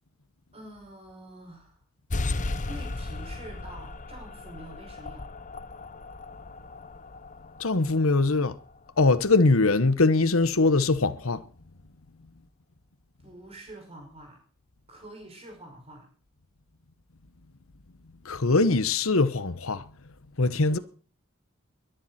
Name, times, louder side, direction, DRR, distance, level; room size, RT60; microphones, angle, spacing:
voice 1, 0.5-1.8 2.4-5.3 13.2-14.4 14.9-16.1 20.7-20.8, right 1 dB, 30° right, 5.8 m, -46 dB
sound 1, 2.1-9.2, left 2 dB, 35° left, 0.9 m, -36 dB
voice 2, 7.6-8.5 9.0-11.4 18.2-19.8 20.4-20.8, left 3 dB, 70° left, 1.1 m, -22 dB
22.5 x 10.5 x 4.3 m
head